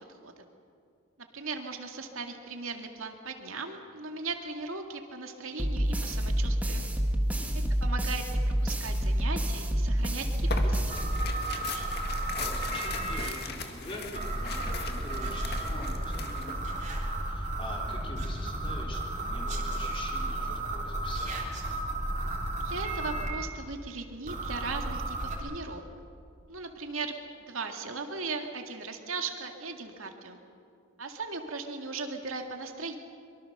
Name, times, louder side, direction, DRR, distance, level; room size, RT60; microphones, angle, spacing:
voice 1, 0.1-0.5 1.3-6.9 7.8-10.8 22.6-25.8 26.5-27.2 27.5-30.4 31.0-33.0, right 4 dB, 75° right, 4 dB, 2.2 m, -38 dB
sound 1, 5.6-11.7, equal, 5° right, 1.7 m, -28 dB
voice 2, 7.3-7.8 12.4-16.8 17.2-21.4, left 1 dB, 25° left, -1 dB, 4.0 m, -44 dB
Tearing, 10.4-16.6, left 3 dB, 50° left, 2.0 m, -37 dB
sound 2, 10.9-13.2 14.1-23.3 24.3-25.4, right 1 dB, 35° right, 3.4 m, -33 dB
24.0 x 24.0 x 6.7 m, 2.4 s
head